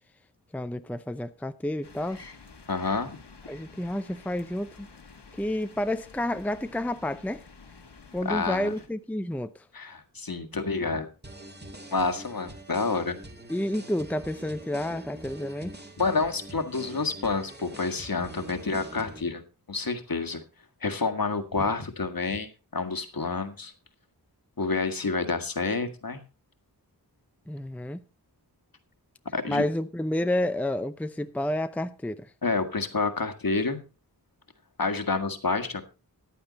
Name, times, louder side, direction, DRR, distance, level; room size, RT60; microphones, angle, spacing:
voice 1, 0.5-2.3 3.5-4.9 5.3-7.5 8.1-9.7 13.5-15.8 27.5-28.0 29.5-32.3, left 1 dB, 5° left, 0.6 m, -30 dB
sound 1, 1.8-8.9, left 4 dB, 80° left, 1.8 m, -50 dB
voice 2, 2.7-3.2 8.3-8.7 9.7-11.1 11.9-13.2 16.0-19.4 19.7-20.4 20.8-23.7 24.6-26.2 29.3-29.6 32.4-33.8 34.8-35.8, left 4 dB, 60° left, 1.8 m, -28 dB
sound 2, 11.2-19.2, right 1 dB, 25° right, 2.2 m, -44 dB
14.5 x 10.0 x 4.1 m
wide cardioid pair, 65°, 40 cm